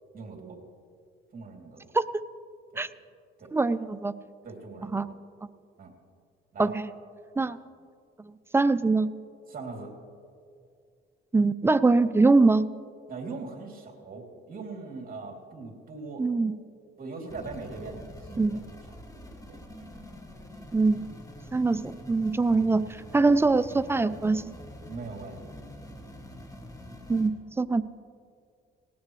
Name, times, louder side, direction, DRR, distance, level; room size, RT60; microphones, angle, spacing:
voice 1, 0.1-0.6 1.3-1.9 2.7-2.8 3.4-3.5 4.4-5.0 5.8-5.9 6.5-6.7 7.3-7.5 9.5-9.9 13.1-16.3 17.0-18.6 19.5-19.6 24.9-25.5, right 3 dB, 45° right, 0 dB, 3.1 m, -40 dB
voice 2, 3.5-4.1 4.9-5.1 6.6-6.9 7.4-7.6 8.5-9.1 11.3-12.7 16.2-16.5 18.4-18.6 20.7-21.0 21.5-24.6 27.1-27.8, right 3 dB, 10° right, 13 dB, 0.5 m, -23 dB
sound 1, 17.3-27.3, equal, 15° left, 2.1 m, -45 dB
19.0 x 18.0 x 3.3 m, 2.3 s
cardioid pair, 90°, 20 cm